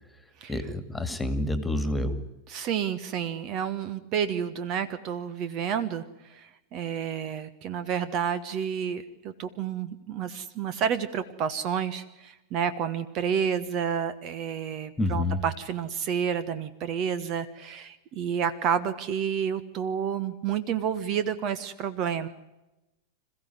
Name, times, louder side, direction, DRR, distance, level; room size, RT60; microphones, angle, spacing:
voice 1, 0.5-2.2 15.0-15.4, left 1 dB, 10° left, 10 dB, 2.3 m, -28 dB
voice 2, 2.5-22.3, right 8 dB, 40° right, 13 dB, 1.2 m, -30 dB
27.0 x 15.5 x 9.6 m, 1.0 s
figure-of-eight pair, 90°, 0 cm